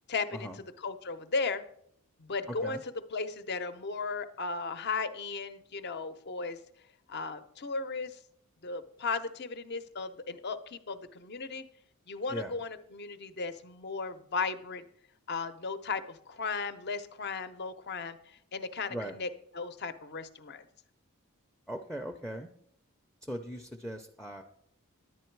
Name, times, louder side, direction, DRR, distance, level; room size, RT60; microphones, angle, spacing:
voice 1, 0.1-0.5 0.8-1.6 2.2-2.8 3.1-6.6 7.1-8.2 8.6-11.6 12.1-14.8 15.3-18.2 18.5-19.3 19.5-20.7, left 4 dB, 50° left, 11 dB, 0.7 m, -35 dB
voice 2, 21.7-22.5 23.2-24.4, equal, 5° left, 6 dB, 0.5 m, -39 dB
11.0 x 8.7 x 4.6 m, 0.69 s
head